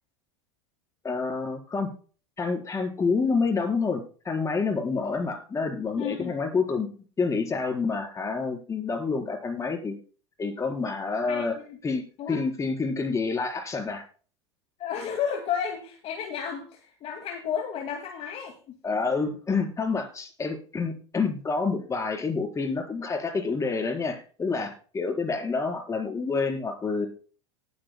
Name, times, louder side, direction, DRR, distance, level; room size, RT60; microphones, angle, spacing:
voice 1, 1.0-1.9 2.4-10.0 10.4-11.5 11.8-14.0 18.8-27.1, left 4 dB, 20° left, 2 dB, 4.5 m, -28 dB
voice 2, 6.0-6.4 11.3-11.8 12.2-12.4 14.8-18.8, left 8 dB, 45° left, 3 dB, 2.3 m, -32 dB
19.5 x 9.1 x 2.3 m, 0.39 s
hypercardioid pair, 95°, 15 cm